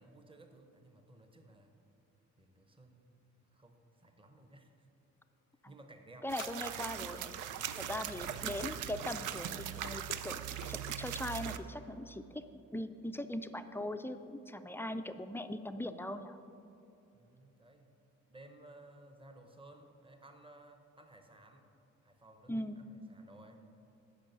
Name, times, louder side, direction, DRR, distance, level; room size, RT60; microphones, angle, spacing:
voice 1, 0.0-1.7 2.4-3.2 3.5-4.9 5.7-7.0 7.8-8.5 17.1-17.9 18.3-21.7 22.0-23.7, right 2 dB, 15° right, 6 dB, 0.9 m, -57 dB
voice 2, 6.2-7.3 7.8-10.4 10.7-12.4 12.7-16.4 22.5-22.8, left 1 dB, 10° left, 9 dB, 0.4 m, -40 dB
sound 1, 6.3-11.6, right 10 dB, 85° right, 0.5 m, -40 dB
sound 2, 6.4-7.2 8.6-9.2 9.8-11.0, left 11 dB, 70° left, 0.5 m, -53 dB
8.4 x 5.7 x 6.8 m, 2.8 s
cardioid pair, 90°, 30 cm